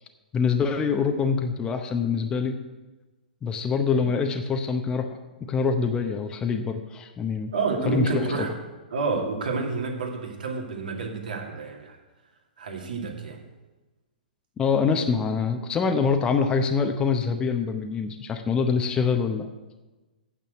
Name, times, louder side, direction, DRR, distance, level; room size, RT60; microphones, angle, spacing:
voice 1, 0.3-2.6 3.4-5.2 5.5-7.5 7.8-8.2 14.6-19.5, left 5 dB, 15° left, 5 dB, 0.8 m, -25 dB
voice 2, 7.5-8.5 8.9-12.0 12.6-13.4, right 4 dB, 65° right, 1 dB, 2.2 m, -29 dB
9.2 x 6.9 x 7.9 m, 1.2 s
figure-of-eight pair, 120°, 5 cm